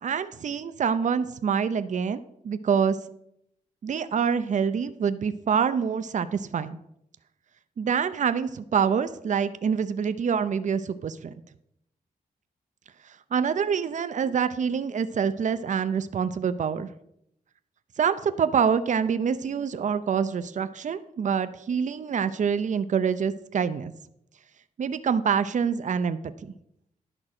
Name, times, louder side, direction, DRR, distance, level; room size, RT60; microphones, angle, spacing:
voice 1, 0.0-3.0 3.8-6.8 7.8-11.3 13.3-16.9 18.0-23.9 24.8-26.5, right 7 dB, 55° right, 12 dB, 0.6 m, -26 dB
11.0 x 6.1 x 4.9 m, 0.76 s
cardioid pair, 85°, 15 cm